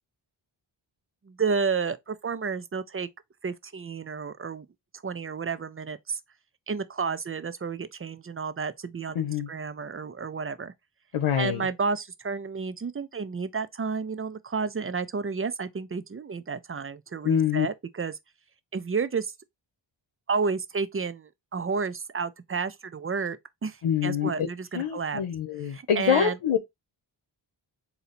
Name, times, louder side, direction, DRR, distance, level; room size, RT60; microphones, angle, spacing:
voice 1, 1.3-3.1 3.4-4.7 5.0-6.2 6.7-10.7 11.4-18.1 18.7-19.3 20.3-23.4 23.6-25.2 25.7-26.4, right 5 dB, 30° right, 0.4 m, -31 dB
voice 2, 9.1-9.5 11.1-11.7 17.2-17.7 23.8-24.5 24.7-26.6, left 8 dB, 85° left, 0.9 m, -25 dB
3.9 x 2.8 x 4.1 m
wide cardioid pair, 125°, 49 cm